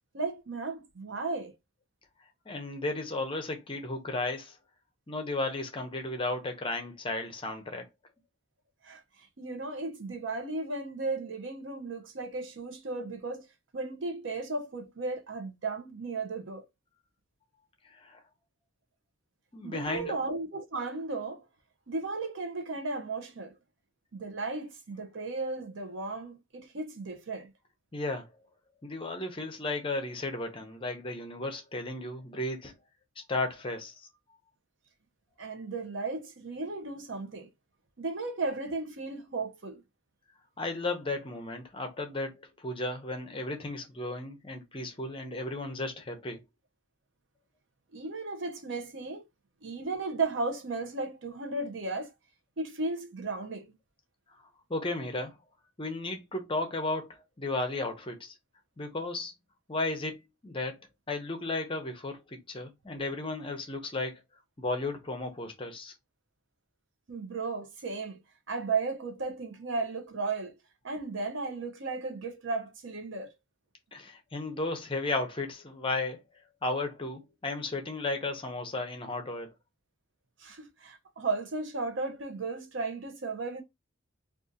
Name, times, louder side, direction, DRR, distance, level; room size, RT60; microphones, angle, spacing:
voice 1, 0.1-1.5 8.8-13.5 13.7-16.7 19.6-21.4 21.9-23.5 24.1-27.5 35.4-37.5 38.0-39.8 47.9-49.2 49.6-52.1 52.6-53.7 67.1-68.2 68.5-70.5 70.8-73.3 80.4-83.6, right 3 dB, 60° right, 0.6 m, -35 dB
voice 2, 2.5-4.5 5.1-7.9 18.0-18.2 19.5-20.1 27.9-28.3 28.8-32.7 33.3-33.9 40.6-42.3 42.6-46.4 54.7-55.4 55.8-57.1 57.4-58.3 58.8-59.3 59.7-60.2 60.4-60.8 61.1-64.2 64.6-65.9 73.9-76.2 76.6-79.5, left 2 dB, 25° left, 0.6 m, -34 dB
2.5 x 2.4 x 3.8 m
head